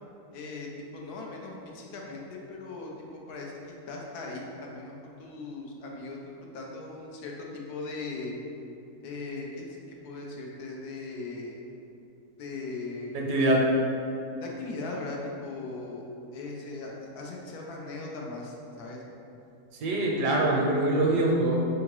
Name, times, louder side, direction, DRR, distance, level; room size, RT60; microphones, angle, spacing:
voice 1, 0.3-8.3 9.0-11.6 12.4-13.3 14.4-16.0 16.3-19.0, left 3 dB, 70° left, -1 dB, 1.1 m, -39 dB
voice 2, 13.1-13.6 19.8-21.6, right 1 dB, 75° right, -1 dB, 1.2 m, -24 dB
3.7 x 3.5 x 3.1 m, 2.7 s
omnidirectional pair, 1.8 m